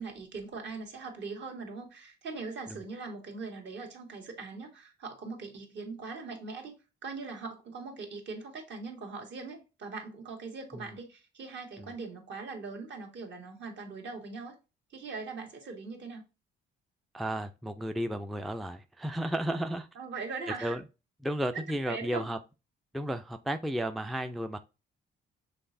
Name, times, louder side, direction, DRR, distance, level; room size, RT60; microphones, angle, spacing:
voice 1, 0.0-14.5 14.9-16.2 19.9-20.7 21.5-22.3, right 4 dB, 65° right, 1.6 m, -41 dB
voice 2, 17.1-19.9 20.6-20.8 21.2-22.4 22.9-24.6, right 1 dB, ahead, 0.3 m, -33 dB
5.8 x 3.3 x 2.6 m
cardioid pair, 90°, 20 cm